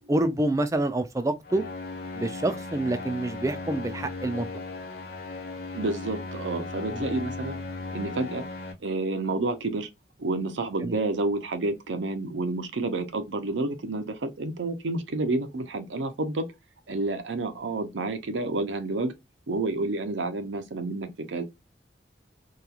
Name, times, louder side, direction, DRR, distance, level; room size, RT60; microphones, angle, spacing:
voice 1, 0.0-1.6 2.2-4.5 6.9-7.0 10.8-11.0, right 1 dB, 15° right, 0.3 m, -27 dB
sound 1, 1.4-8.7, left 3 dB, 55° left, 0.7 m, -37 dB
voice 2, 5.7-7.6 7.9-8.4 8.8-9.9 10.2-16.4 16.9-19.1 19.5-21.4, right 2 dB, 85° right, 0.6 m, -29 dB
2.9 x 2.3 x 2.3 m
head